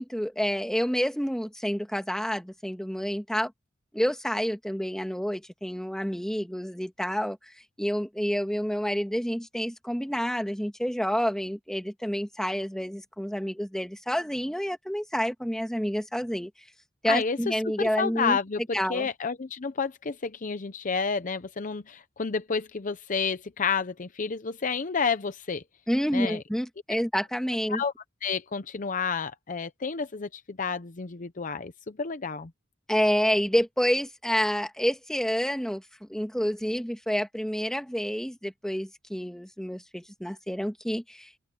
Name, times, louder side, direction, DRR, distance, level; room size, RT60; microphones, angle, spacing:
voice 1, 0.0-3.5 3.9-7.4 7.8-16.5 17.0-18.4 18.7-19.1 25.9-27.8 32.9-41.4, equal, 5° left, 2.1 m, -28 dB
voice 2, 17.1-25.6 26.1-26.4 27.7-27.9 28.2-32.5, left 5 dB, 45° left, 0.7 m, -30 dB
open air
head